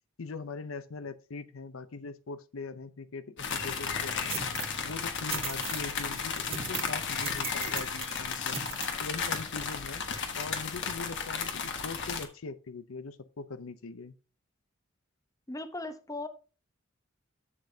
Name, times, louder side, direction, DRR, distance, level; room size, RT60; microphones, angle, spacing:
voice 1, 0.2-4.4 4.8-10.0 10.3-14.2, left 4 dB, 90° left, 0.6 m, -41 dB
sound 1, 3.4-12.3, left 6 dB, 60° left, 1.4 m, -34 dB
sound 2, 4.3-4.8 5.3-5.9 6.5-7.0 7.2-8.2 8.5-8.9, right 7 dB, 30° right, 0.9 m, -38 dB
voice 2, 15.5-16.3, left 2 dB, 15° left, 0.8 m, -37 dB
11.0 x 7.3 x 2.8 m
head